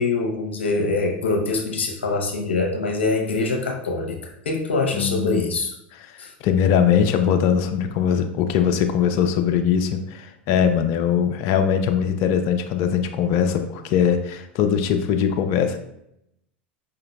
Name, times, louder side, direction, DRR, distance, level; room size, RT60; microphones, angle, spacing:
voice 1, 0.0-5.7 6.2-6.3, left 3 dB, 85° left, 1 dB, 0.9 m, -24 dB
voice 2, 4.9-5.3 6.1-15.8, left 8 dB, 55° left, 7 dB, 0.6 m, -21 dB
5.4 x 3.8 x 2.2 m, 0.78 s
hypercardioid pair, 90°, 6 cm